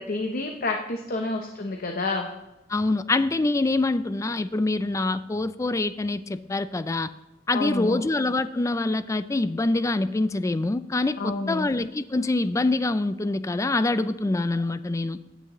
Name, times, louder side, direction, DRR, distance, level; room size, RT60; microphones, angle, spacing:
voice 1, 0.0-2.3 7.5-8.0 11.2-11.7, left 2 dB, 50° left, 3 dB, 0.8 m, -29 dB
voice 2, 2.7-7.1 7.5-15.2, left 2 dB, 15° left, 13 dB, 0.3 m, -25 dB
16.0 x 9.1 x 3.0 m, 0.96 s
head